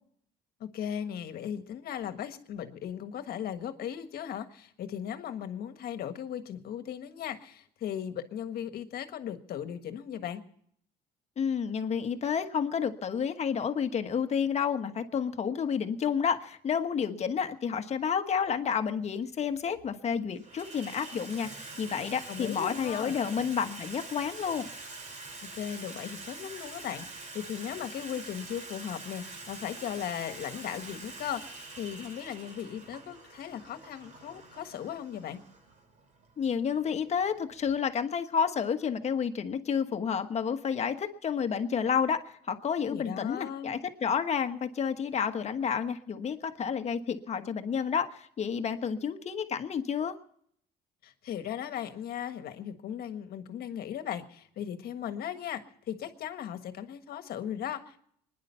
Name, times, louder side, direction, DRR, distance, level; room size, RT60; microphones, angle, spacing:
voice 1, 0.6-10.4 22.3-23.1 25.4-35.4 42.9-43.7 51.0-55.6 55.9-58.0, left 9 dB, 65° left, 9 dB, 1.5 m, -37 dB
voice 2, 11.4-24.7 36.4-50.2, left 7 dB, 40° left, 7 dB, 1.3 m, -30 dB
Water tap faucet / Sink (filling or washing), 18.5-18.6 19.5-19.9 20.2-37.8, right 3 dB, 45° right, 3.0 m, -45 dB
23.5 x 10.5 x 5.6 m, 0.66 s
cardioid pair, 110°, 17 cm